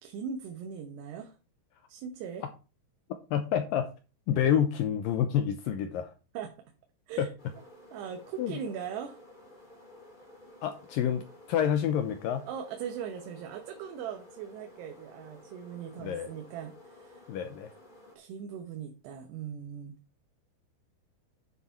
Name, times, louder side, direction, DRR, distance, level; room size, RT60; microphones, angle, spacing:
voice 1, 0.0-1.4 1.9-2.5 6.3-6.5 7.1-7.3 7.9-9.2 12.5-17.3 18.2-20.0, right 7 dB, 90° right, 4 dB, 3.2 m, -40 dB
voice 2, 3.3-3.9 4.3-6.1 7.2-7.3 8.4-8.5 10.6-11.2 11.5-12.4 16.0-16.3 17.3-17.7, left 9 dB, 75° left, 7 dB, 2.2 m, -28 dB
sound 1, 7.4-18.2, left 1 dB, 15° left, 2.1 m, -53 dB
9.7 x 7.0 x 4.4 m, 0.32 s
omnidirectional pair, 4.7 m